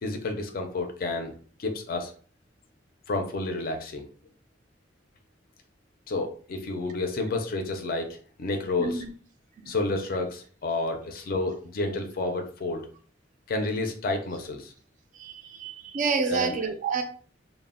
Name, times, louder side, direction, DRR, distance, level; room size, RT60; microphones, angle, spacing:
voice 1, 0.0-1.3 1.6-2.1 3.1-4.1 6.1-9.0 9.7-12.9 13.5-14.7 16.3-16.5, left 2 dB, 50° left, 4 dB, 0.4 m, -30 dB
voice 2, 15.2-17.0, right 5 dB, 45° right, 6 dB, 0.3 m, -28 dB
2.0 x 2.0 x 3.5 m, 0.43 s
head